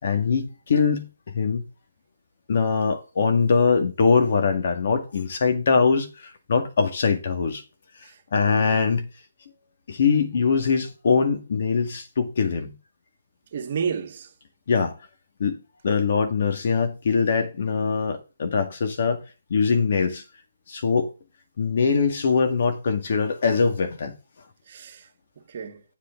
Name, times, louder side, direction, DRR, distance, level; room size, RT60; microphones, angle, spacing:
voice 1, 0.0-1.1 1.3-1.6 2.5-7.6 8.3-9.1 9.9-12.7 14.7-14.9 15.4-15.6 15.8-19.2 19.5-20.2 20.7-21.1 21.6-24.2, left 5 dB, 50° left, 2.0 m, -22 dB
voice 2, 8.0-8.6 13.5-14.3 24.7-25.8, right 6 dB, 45° right, 1.9 m, -32 dB
8.2 x 8.2 x 3.8 m
hypercardioid pair, 155°, 0 cm